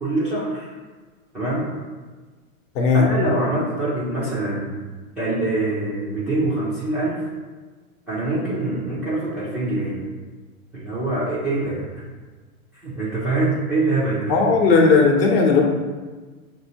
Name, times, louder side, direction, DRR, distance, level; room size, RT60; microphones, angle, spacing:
voice 1, 0.0-0.7 1.3-1.7 2.9-4.7 5.2-7.2 8.1-10.1 10.7-11.9 12.7-14.4, right 2 dB, 5° right, -12 dB, 0.3 m, -24 dB
voice 2, 2.7-3.1 14.3-15.6, left 4 dB, 40° left, 1 dB, 0.8 m, -16 dB
5.5 x 2.7 x 2.8 m, 1.3 s
hypercardioid pair, 120°, 43 cm